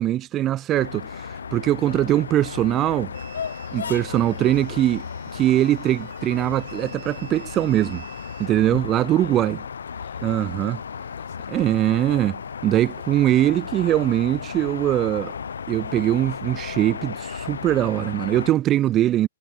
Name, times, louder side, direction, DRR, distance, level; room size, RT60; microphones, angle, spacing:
voice 1, 0.0-3.1 3.7-5.0 5.3-8.0 8.4-9.6 10.2-10.8 11.5-15.3 15.7-19.3, right 13 dB, 25° right, 0.3 m, -22 dB
sound 1, 0.7-18.5, left 6 dB, 75° left, 0.5 m, -34 dB
sound 2, 1.0-6.2, right 30 dB, 40° right, 6.7 m, -55 dB
sound 3, 3.1-8.5, right 12 dB, 60° right, 4.3 m, -49 dB
voice 2, 8.0-8.7 9.1-11.7, left 18 dB, 50° left, 4.2 m, -49 dB
hypercardioid pair, 120°, 0 cm